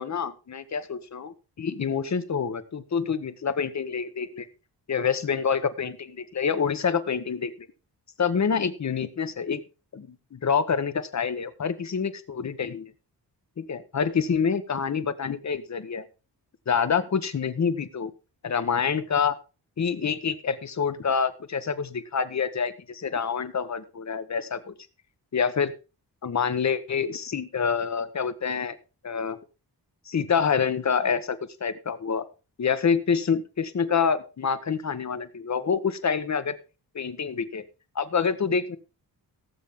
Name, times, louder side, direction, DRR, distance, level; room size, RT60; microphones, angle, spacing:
voice 1, 0.0-4.5 4.9-7.5 8.2-9.6 9.9-12.9 13.6-16.0 16.7-18.1 18.4-19.3 19.8-24.7 25.3-25.7 26.2-28.8 29.0-29.4 30.1-32.2 32.6-36.6 36.9-37.6 37.9-38.8, left 6 dB, 45° left, 12 dB, 1.2 m, -27 dB
17.5 x 7.3 x 3.7 m, 0.31 s
wide cardioid pair, 105°, 38 cm